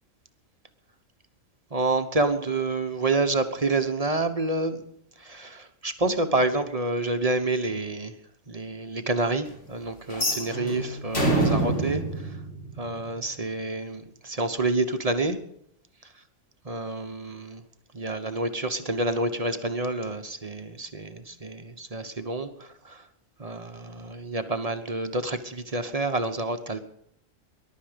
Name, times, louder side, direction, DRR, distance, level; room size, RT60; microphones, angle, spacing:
voice 1, 1.7-4.8 5.2-8.1 8.5-12.3 12.8-15.4 16.7-17.6 17.9-23.0 23.4-26.8, right 2 dB, 30° right, 8 dB, 1.1 m, -28 dB
sound 1, 10.1-13.2, right 1 dB, 85° left, 3.6 m, -27 dB
20.5 x 12.0 x 5.2 m, 0.74 s
omnidirectional pair, 1.4 m